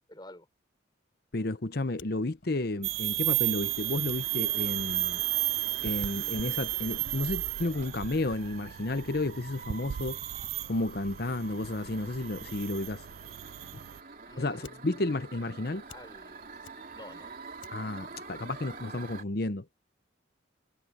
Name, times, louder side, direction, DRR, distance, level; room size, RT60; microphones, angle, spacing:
voice 1, 0.1-0.5 14.2-15.0 15.9-16.5 16.9-17.3, left 1 dB, 20° left, 4.3 m, -50 dB
voice 2, 1.3-5.2 5.8-10.2 10.7-13.0 14.4-15.8 17.7-19.7, left 2 dB, 50° left, 0.9 m, -32 dB
Fire, 1.8-19.2, left 3 dB, 85° left, 6.9 m, -60 dB
sound 1, 2.8-14.0, right 18 dB, 90° right, 0.4 m, -33 dB
sound 2, 3.3-19.2, right 4 dB, 45° right, 3.4 m, -47 dB
head